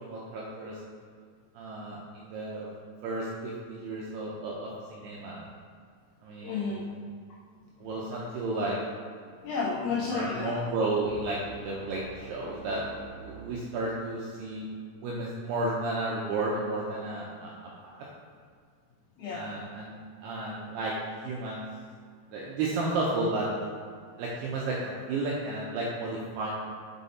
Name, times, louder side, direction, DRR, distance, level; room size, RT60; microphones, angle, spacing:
voice 1, 0.0-0.8 1.6-2.7 3.0-5.4 6.2-6.8 7.8-8.8 10.1-12.8 13.2-14.7 15.0-18.1 19.3-20.9 21.2-21.6 22.3-23.5 24.2-26.5, right 2 dB, 80° right, -4 dB, 2.4 m, -33 dB
voice 2, 6.4-6.9 8.1-8.3 9.4-10.6 19.2-19.5, left 4 dB, 85° left, -4 dB, 2.3 m, -32 dB
sound 1, 11.1-14.1, right 4 dB, 65° right, 2.1 m, -48 dB
6.5 x 5.4 x 4.1 m, 2.1 s
omnidirectional pair, 5.5 m